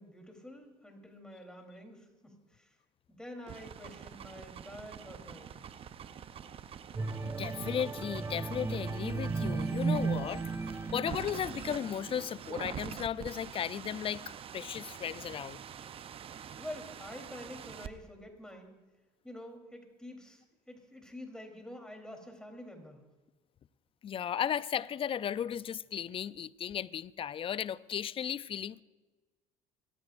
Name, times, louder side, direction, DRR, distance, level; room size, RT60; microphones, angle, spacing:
voice 1, 0.0-2.8 3.1-5.7 16.6-18.7 19.2-23.0, left 1 dB, 5° left, 3.7 m, -48 dB
sound 1, 3.4-17.9, right 8 dB, 45° right, 0.8 m, -46 dB
sound 2, 7.0-12.2 12.7-12.9, right 4 dB, 20° right, 1.0 m, -35 dB
voice 2, 7.2-10.4 10.9-15.6 24.0-28.8, left 9 dB, 40° left, 0.6 m, -35 dB
26.5 x 14.5 x 2.6 m
hypercardioid pair, 75°, 14 cm